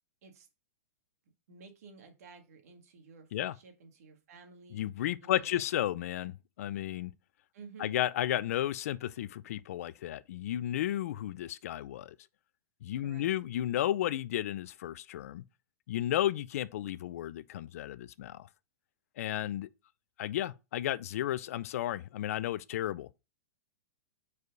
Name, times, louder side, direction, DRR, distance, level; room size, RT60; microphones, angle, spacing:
voice 1, 1.5-4.8 5.2-5.6 7.5-8.0 13.0-13.3, right 5 dB, 70° right, 1.9 m, -53 dB
voice 2, 4.7-7.1 7.8-12.2 12.8-15.4 15.9-18.5 19.2-19.7 20.2-23.2, left 12 dB, 65° left, 0.5 m, -33 dB
4.8 x 4.7 x 5.3 m
hypercardioid pair, 145°, 9 cm